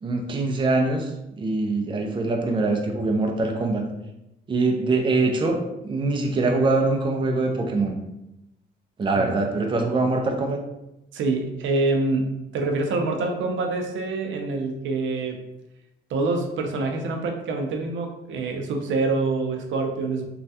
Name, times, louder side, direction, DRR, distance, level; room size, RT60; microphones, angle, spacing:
voice 1, 0.0-3.8 4.5-8.0 9.0-10.6, right 3 dB, 25° right, 3 dB, 0.4 m, -23 dB
voice 2, 11.1-15.4 16.1-20.3, right 3 dB, 75° right, 3 dB, 0.5 m, -26 dB
3.2 x 2.3 x 2.7 m, 0.89 s
cardioid pair, 90°, 20 cm